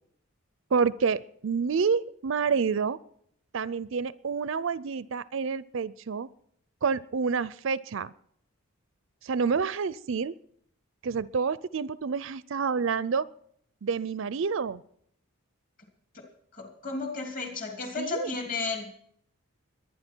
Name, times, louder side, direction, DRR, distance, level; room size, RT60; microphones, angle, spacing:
voice 1, 0.7-3.0 3.5-6.3 6.8-8.1 9.2-10.3 11.0-13.3 13.8-14.8 18.0-18.3, right 5 dB, 60° right, 18 dB, 0.4 m, -28 dB
voice 2, 16.5-18.9, left 4 dB, 35° left, 2 dB, 3.0 m, -33 dB
22.5 x 10.0 x 4.5 m, 0.68 s
head